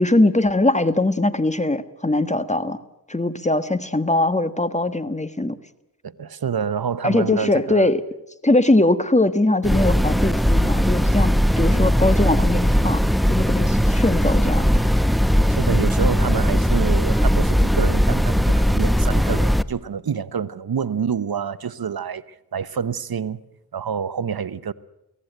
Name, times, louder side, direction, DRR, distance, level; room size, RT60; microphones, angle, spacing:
voice 1, 0.0-2.8 3.1-5.6 7.0-8.0 8.4-13.0 13.3-14.7, left 2 dB, 20° left, 1.4 m, -21 dB
voice 2, 6.0-7.9 15.5-22.2 22.5-23.4 23.7-24.7, right 7 dB, 70° right, 0.9 m, -27 dB
sound 1, 9.6-19.6, equal, ahead, 0.8 m, -19 dB
sound 2, 11.7-19.5, left 3 dB, 70° left, 7.2 m, -51 dB
23.0 x 17.0 x 9.1 m
cardioid pair, 50°, 38 cm